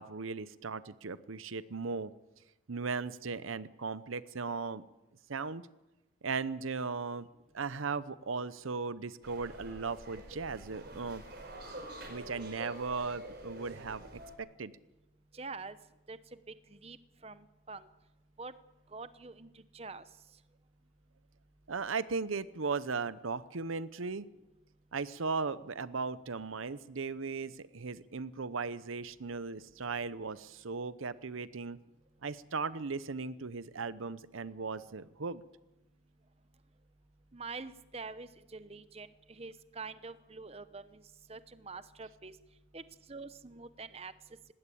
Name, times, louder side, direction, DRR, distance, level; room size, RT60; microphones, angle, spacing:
voice 1, 0.0-2.1 2.7-4.8 5.3-5.6 6.2-7.3 7.5-11.2 12.1-14.1 14.4-14.7 21.7-24.3 24.9-31.8 32.2-35.4, right 4 dB, 85° right, 16 dB, 0.8 m, -37 dB
sound 1, 9.2-14.3, right 1 dB, 50° right, 5.0 m, -47 dB
voice 2, 15.3-15.8 16.1-16.2 16.5-17.0 17.2-17.9 18.4-18.5 18.9-20.0 37.3-41.0 41.3-42.3 42.7-42.8 43.1-44.1, right 4 dB, 30° right, 13 dB, 0.8 m, -45 dB
19.5 x 17.5 x 8.5 m, 1.0 s
head